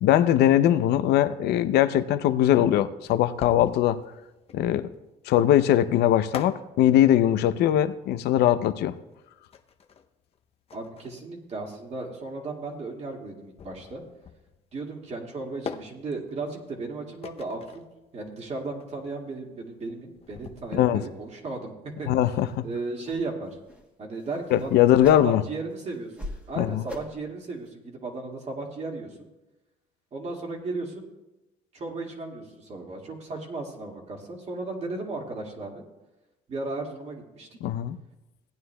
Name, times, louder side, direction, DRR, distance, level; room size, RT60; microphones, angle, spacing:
voice 1, 0.0-4.0 4.5-4.9 5.3-8.9 20.7-21.0 22.1-22.6 24.5-25.4 26.6-26.8 37.6-38.0, left 12 dB, 75° left, 12 dB, 0.6 m, -21 dB
sound 1, 3.0-21.3, left 6 dB, 35° left, 0.6 m, -45 dB
voice 2, 10.7-14.0 14.7-17.8 18.1-21.7 22.0-22.1 22.6-23.5 24.0-24.8 25.2-29.2 30.1-31.1 31.7-35.8 36.5-37.5, right 3 dB, 40° right, 0 dB, 2.0 m, -35 dB
sound 2, 22.5-22.6 23.0-23.2 23.6-23.8 24.2-25.5 25.9-26.5 26.9-27.3 27.7-27.8, left 1 dB, 5° right, 1.4 m, -40 dB
17.5 x 9.4 x 2.2 m, 1.0 s
cardioid pair, 110°, 17 cm